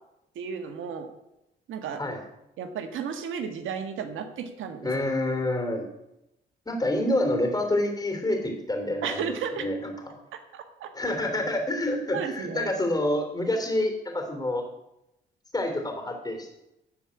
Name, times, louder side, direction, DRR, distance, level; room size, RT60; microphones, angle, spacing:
voice 1, 0.3-1.1 1.7-2.0 2.6-4.9 9.0-9.6 10.3-10.9 12.1-12.7, right 7 dB, 80° right, 7 dB, 1.4 m, -33 dB
voice 2, 4.8-5.8 6.6-9.9 10.9-14.6 15.5-16.5, left 1 dB, 20° left, 4 dB, 3.2 m, -27 dB
13.5 x 5.0 x 8.4 m, 0.87 s
cardioid pair, 90°, 20 cm